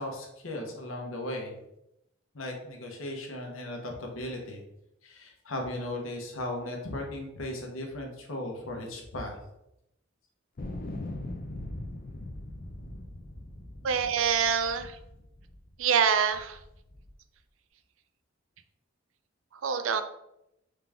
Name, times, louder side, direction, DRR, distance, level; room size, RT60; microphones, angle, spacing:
voice 1, 0.0-1.5 2.3-4.6 5.0-9.4, left 1 dB, 85° left, 1 dB, 1.0 m, -37 dB
sound 1, 10.6-15.8 16.3-17.1, left 1 dB, 45° left, 0.6 m, -41 dB
voice 2, 13.8-14.9 15.8-16.6 19.6-20.0, right 7 dB, 75° right, 10 dB, 0.4 m, -25 dB
3.8 x 3.5 x 3.5 m, 0.84 s
head